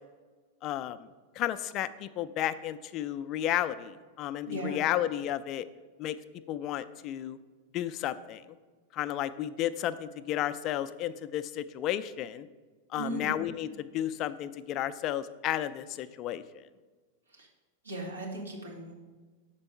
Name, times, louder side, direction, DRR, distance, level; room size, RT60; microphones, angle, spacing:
voice 1, 0.6-1.1 1.4-5.7 6.0-6.2 6.5-7.4 7.7-8.4 8.9-12.5 12.9-16.4, left 12 dB, 40° left, 13 dB, 0.3 m, -32 dB
voice 2, 4.4-4.8 12.9-13.3 17.3-17.5 17.8-18.9, right 2 dB, 90° right, -3 dB, 1.6 m, -37 dB
6.8 x 4.5 x 5.4 m, 1.3 s
hypercardioid pair, 95°, 0 cm